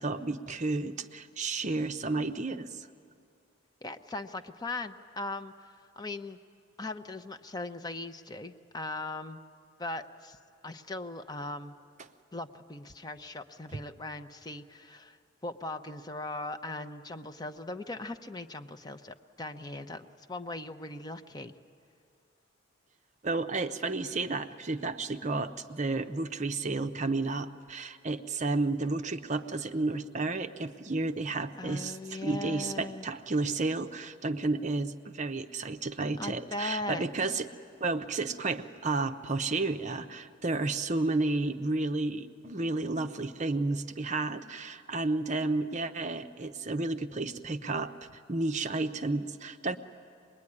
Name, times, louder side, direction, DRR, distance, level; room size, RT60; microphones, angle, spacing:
voice 1, 0.0-2.9 13.7-13.8 23.2-37.5 37.8-47.9 48.3-49.8, right 3 dB, 35° right, 8 dB, 0.7 m, -32 dB
voice 2, 3.8-5.5 6.0-6.4 6.8-9.4 9.8-10.4 10.6-11.7 12.3-15.2 15.4-21.5 31.6-33.1 36.2-37.1, left 2 dB, 20° left, 8 dB, 0.7 m, -39 dB
25.0 x 21.0 x 9.8 m, 2.4 s
head